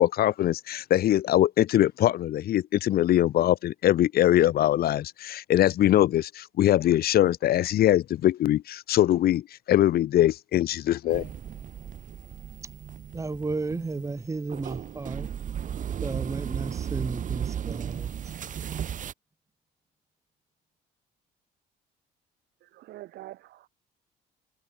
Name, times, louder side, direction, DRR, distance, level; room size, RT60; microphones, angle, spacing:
voice 1, 0.0-11.3, left 13 dB, 65° left, 2.1 m, -22 dB
sound 1, 11.1-19.1, right 9 dB, 50° right, 5.4 m, -35 dB
voice 2, 13.1-15.3 16.0-18.1, right 3 dB, 20° right, 2.7 m, -33 dB
voice 3, 22.6-23.7, right 15 dB, 75° right, 5.3 m, -45 dB
cardioid pair, 110°, 17 cm